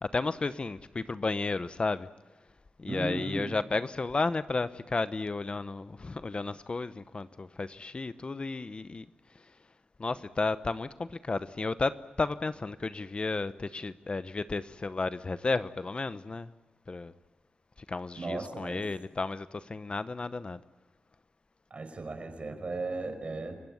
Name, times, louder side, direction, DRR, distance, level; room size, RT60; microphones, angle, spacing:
voice 1, 0.0-2.1 2.8-9.1 10.0-16.5 16.9-17.1 17.9-20.6, left 3 dB, 40° left, 0.8 m, -33 dB
voice 2, 2.9-3.5 18.2-18.9 21.7-23.6, right 2 dB, 45° right, 5.0 m, -36 dB
29.5 x 16.5 x 9.6 m
cardioid pair, 75°, 3 cm